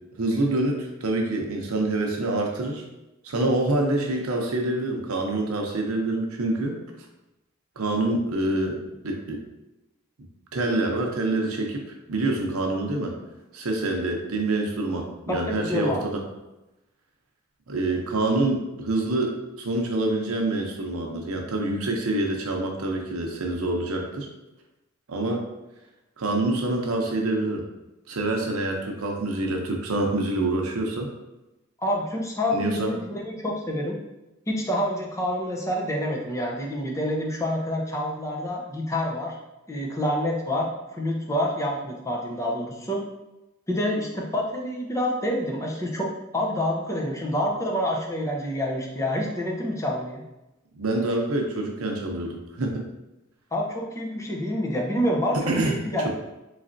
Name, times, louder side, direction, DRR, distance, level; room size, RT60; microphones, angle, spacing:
voice 1, 0.2-2.8 3.2-6.8 7.8-8.8 9.0-9.4 10.5-11.8 12.1-13.1 13.5-16.2 17.7-24.3 25.1-25.4 26.2-27.6 28.1-31.1 32.5-32.9 50.7-52.9 55.3-55.7, right 2 dB, 80° right, 1 dB, 0.7 m, -26 dB
voice 2, 15.3-16.0 31.8-34.0 34.5-39.4 39.7-43.0 43.7-50.2 53.5-55.4 55.6-56.1, left 1 dB, 15° left, -1 dB, 0.5 m, -27 dB
4.0 x 3.2 x 2.6 m, 0.97 s
head